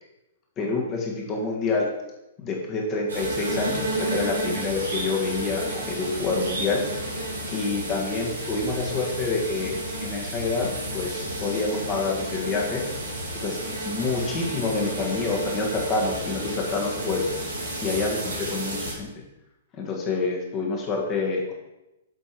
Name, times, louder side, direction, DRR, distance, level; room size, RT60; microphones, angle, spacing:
voice 1, 0.6-1.9 2.4-6.8 7.5-12.8 13.4-13.6 13.8-17.3 17.8-19.1 19.8-21.5, left 3 dB, 30° left, -1 dB, 1.6 m, -27 dB
sound 1, 3.1-18.9, right 1 dB, 85° right, 2.3 m, -31 dB
7.7 x 3.5 x 4.6 m, 0.94 s
hypercardioid pair, 125°, 0 cm